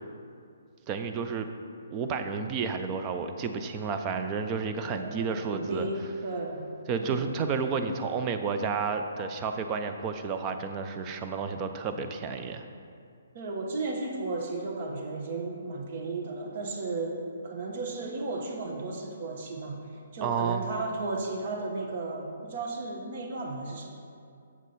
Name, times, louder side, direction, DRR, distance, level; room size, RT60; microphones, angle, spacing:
voice 1, 0.9-1.5 1.9-5.9 6.9-12.7 20.2-20.6, right 5 dB, 25° right, 7 dB, 0.5 m, -31 dB
voice 2, 4.8-6.6 7.0-7.3 13.3-19.8 20.1-23.9, right 3 dB, 50° right, 1 dB, 1.1 m, -34 dB
7.3 x 6.1 x 4.1 m, 2.4 s
hypercardioid pair, 145°, 0 cm